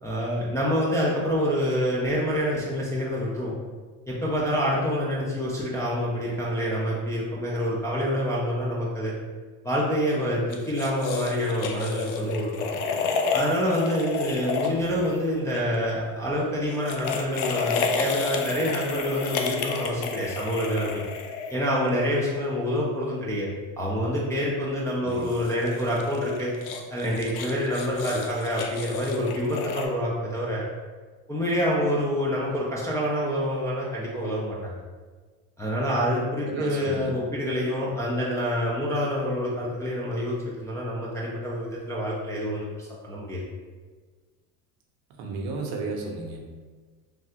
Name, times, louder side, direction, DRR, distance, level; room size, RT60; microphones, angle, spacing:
voice 1, 0.0-3.5 4.1-9.1 9.6-12.7 13.3-21.0 21.5-23.5 23.8-26.5 26.9-30.6 31.3-34.7 35.6-43.4, equal, 10° left, -6 dB, 0.3 m, -27 dB
sound 1, 10.5-15.6 16.7-21.9 25.1-29.9, left 5 dB, 60° left, 0.5 m, -31 dB
voice 2, 25.0-25.3 36.4-37.2 45.2-46.4, right 3 dB, 55° right, 1 dB, 0.7 m, -33 dB
3.2 x 2.4 x 2.8 m, 1.4 s
supercardioid pair, 90°, 43 cm